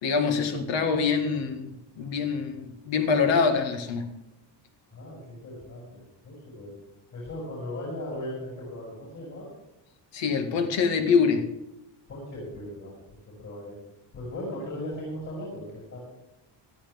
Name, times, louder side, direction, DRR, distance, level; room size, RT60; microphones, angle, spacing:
voice 1, 0.0-4.1 10.1-11.5, left 5 dB, 85° left, 5 dB, 2.1 m, -25 dB
voice 2, 4.9-6.8 7.1-9.5 12.1-13.8 14.1-16.0, left 1 dB, 45° left, -5 dB, 7.3 m, -38 dB
20.5 x 13.0 x 3.6 m, 0.90 s
cardioid pair, 180°, 43 cm